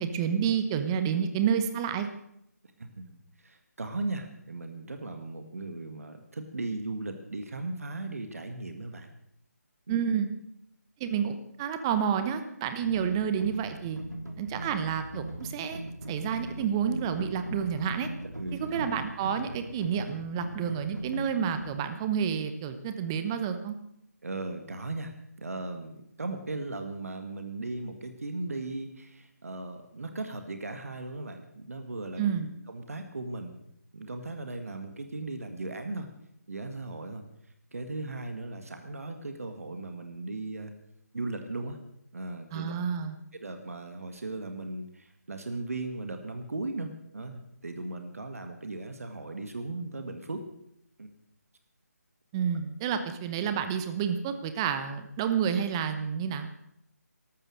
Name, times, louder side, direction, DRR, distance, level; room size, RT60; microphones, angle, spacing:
voice 1, 0.0-2.1 9.9-10.3 11.0-14.0 14.4-15.8 16.1-18.1 18.5-23.8 32.2-32.5 42.5-43.2 52.3-56.6, right 7 dB, 15° right, 9 dB, 0.9 m, -29 dB
voice 2, 2.8-3.2 3.4-9.1 9.9-10.0 18.4-18.9 24.2-25.1 25.4-32.3 32.7-33.6 33.9-36.1 36.5-37.2 37.7-40.7 41.1-41.8 42.1-42.7 43.3-50.4 51.0-51.1, right 2 dB, 60° right, 6 dB, 1.9 m, -37 dB
sound 1, 12.8-21.8, right 1 dB, 85° right, 3.1 m, -40 dB
14.0 x 12.5 x 6.5 m, 0.77 s
figure-of-eight pair, 155°, 9 cm